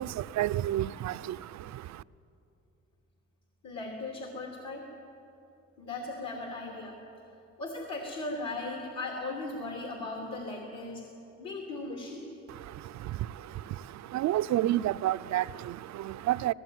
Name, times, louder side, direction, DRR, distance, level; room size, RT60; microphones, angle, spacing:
voice 1, 0.0-2.0 12.5-16.5, right 13 dB, 65° right, 0.5 m, -31 dB
voice 2, 3.6-4.9 5.8-7.0 7.6-11.0 11.4-12.2, left 2 dB, 65° left, 3.1 m, -37 dB
19.0 x 17.0 x 9.3 m
cardioid pair, 90°, 30 cm